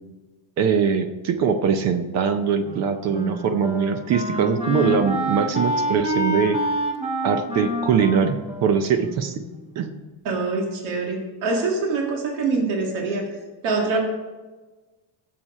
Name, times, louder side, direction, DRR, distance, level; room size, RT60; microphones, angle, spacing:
voice 1, 0.6-6.6 7.2-9.4 9.8-9.9, right 6 dB, 35° right, 10 dB, 0.5 m, -22 dB
Wind instrument woodwind instrument, 2.6-9.8, equal, 15° right, 1.1 m, -28 dB
voice 2, 10.2-13.3 13.6-14.0, right 3 dB, 65° right, 1 dB, 2.0 m, -24 dB
11.0 x 7.4 x 5.3 m, 1.2 s
cardioid pair, 180°, 46 cm